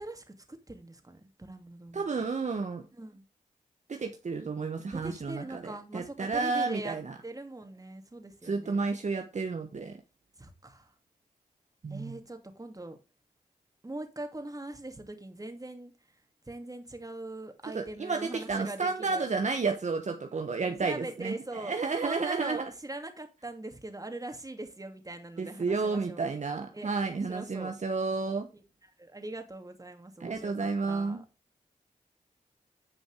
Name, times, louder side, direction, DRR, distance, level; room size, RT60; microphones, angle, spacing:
voice 1, 0.0-2.2 2.9-3.2 4.9-7.0 7.2-8.9 10.4-10.9 11.9-13.0 13.8-19.3 20.8-26.2 26.7-27.7 28.8-31.2, right 2 dB, 25° right, 2.5 m, -42 dB
voice 2, 1.9-2.8 3.9-7.1 8.4-9.9 11.8-12.1 17.7-22.7 25.4-28.5 30.2-31.2, right 4 dB, 50° right, 1.2 m, -31 dB
10.0 x 5.2 x 4.8 m
supercardioid pair, 40°, 15 cm